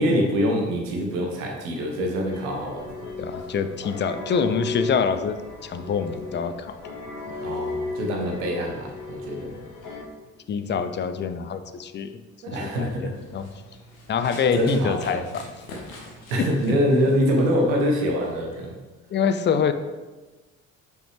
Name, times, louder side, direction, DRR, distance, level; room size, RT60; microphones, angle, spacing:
voice 1, 0.0-3.1 7.4-9.5 12.4-13.1 14.5-15.2 16.3-18.7, equal, 70° right, 0 dB, 1.1 m, -24 dB
sound 1, 2.3-10.0, left 3 dB, 50° left, 1.3 m, -35 dB
voice 2, 3.2-6.8 10.5-12.2 12.5-13.5 14.1-15.5 16.4-16.8 19.1-19.7, left 6 dB, 30° left, 10 dB, 0.5 m, -26 dB
Run, 13.1-18.7, left 1 dB, 80° left, 1.0 m, -44 dB
5.8 x 5.0 x 3.4 m, 1.2 s
figure-of-eight pair, 45°, 40 cm